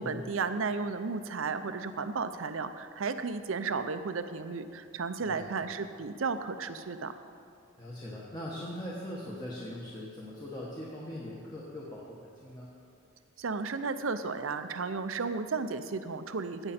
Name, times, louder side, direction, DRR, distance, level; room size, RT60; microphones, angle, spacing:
voice 1, 0.0-7.1 13.4-16.7, right 4 dB, 75° right, 10 dB, 0.6 m, -34 dB
voice 2, 7.8-12.7, left 1 dB, 20° left, -6 dB, 1.2 m, -41 dB
15.0 x 8.8 x 4.3 m, 2.5 s
head